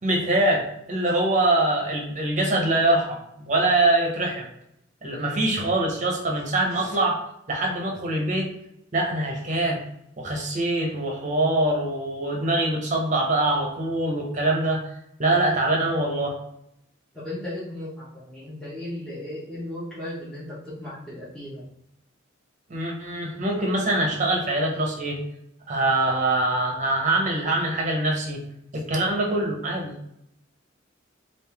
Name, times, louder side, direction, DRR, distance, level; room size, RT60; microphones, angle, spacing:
voice 1, 0.0-4.5 5.0-7.2 7.5-8.5 8.9-9.8 10.2-14.8 15.2-16.4 22.7-25.2 25.7-28.4 28.7-29.9, right 2 dB, 40° right, 0 dB, 0.8 m, -24 dB
voice 2, 17.1-21.6, left 1 dB, 5° left, -12 dB, 1.0 m, -36 dB
3.6 x 2.6 x 3.4 m, 0.78 s
head